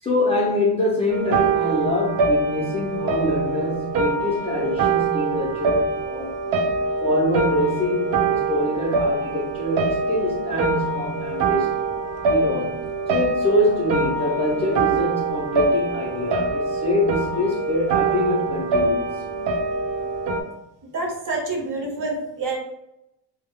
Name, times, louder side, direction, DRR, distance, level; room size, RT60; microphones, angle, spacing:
voice 1, 0.0-6.4 7.0-11.8 12.3-19.2, left 1 dB, 15° left, -6 dB, 0.4 m, -25 dB
sound 1, 1.1-20.4, right 3 dB, 85° right, 0.6 m, -24 dB
voice 2, 20.8-22.6, right 3 dB, 45° right, 0 dB, 0.7 m, -27 dB
2.2 x 2.0 x 3.4 m, 0.86 s
cardioid pair, 155°, 43 cm